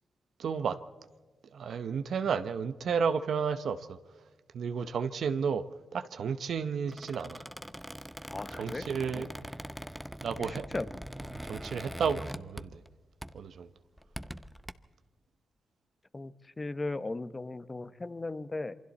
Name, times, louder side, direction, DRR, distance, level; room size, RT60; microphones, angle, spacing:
voice 1, 0.4-0.8 1.5-4.0 4.5-5.6 5.9-7.4 8.5-9.3 10.2-10.7 11.4-12.8 13.3-13.7, right 6 dB, 70° right, 0.8 m, -32 dB
Squeak, 6.8-12.9 13.2-13.5 14.0-14.7, equal, 5° right, 0.7 m, -42 dB
voice 2, 8.3-8.8 9.1-9.2 10.4-10.9 16.1-18.7, left 2 dB, 25° left, 0.9 m, -37 dB
27.0 x 24.0 x 4.2 m
cardioid pair, 85°, 0 cm